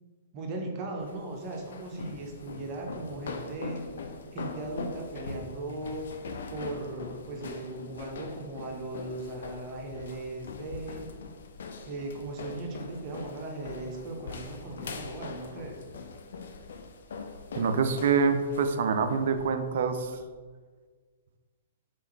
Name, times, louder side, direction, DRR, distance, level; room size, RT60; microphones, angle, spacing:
voice 1, 0.3-3.9 4.3-6.1 6.5-11.1 11.9-15.8, right 2 dB, 30° right, 1 dB, 0.7 m, -38 dB
sound 1, 1.0-20.2, left 4 dB, 60° left, 0.4 m, -42 dB
voice 2, 17.5-20.2, right 5 dB, 55° right, 8 dB, 0.4 m, -26 dB
3.7 x 3.0 x 4.3 m, 1.5 s
figure-of-eight pair, 110°, 0 cm